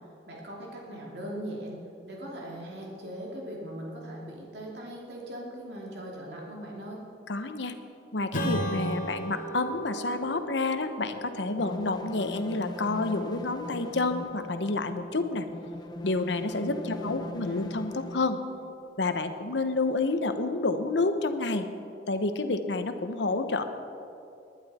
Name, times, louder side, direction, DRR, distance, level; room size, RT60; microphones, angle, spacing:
voice 1, 0.3-7.0 16.8-17.7, equal, 70° right, -3 dB, 2.7 m, -40 dB
voice 2, 7.3-7.7 8.1-15.5 16.0-18.4 19.0-21.7 22.1-23.6, left 3 dB, 90° left, 8 dB, 1.0 m, -29 dB
Strum, 8.3-13.3, right 1 dB, 50° left, 2.0 m, -36 dB
sound 1, 11.6-18.2, left 1 dB, 25° left, 0.6 m, -40 dB
19.5 x 11.0 x 4.3 m, 2.7 s
head